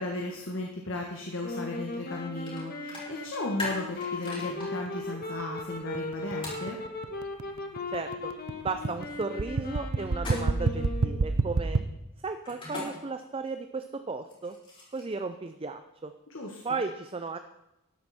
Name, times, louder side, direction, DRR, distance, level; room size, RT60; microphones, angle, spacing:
voice 1, 0.0-6.8 16.3-16.6, left 2 dB, 60° left, 0 dB, 1.6 m, -35 dB
sound 1, 1.4-11.5, left 3 dB, 45° left, 1.6 m, -38 dB
sound 2, 2.5-2.6 2.9-4.7 6.4-6.6 10.1-10.7 12.4-12.9 14.2-15.1, left 2 dB, 25° left, 4.7 m, -38 dB
sound 3, 4.9-11.8, right 3 dB, 75° right, 0.8 m, -29 dB
voice 2, 7.9-8.3 8.6-11.8 12.2-14.6 14.9-16.1 16.6-17.4, right 4 dB, 25° right, 8 dB, 0.5 m, -35 dB
13.0 x 11.0 x 4.3 m, 0.93 s
head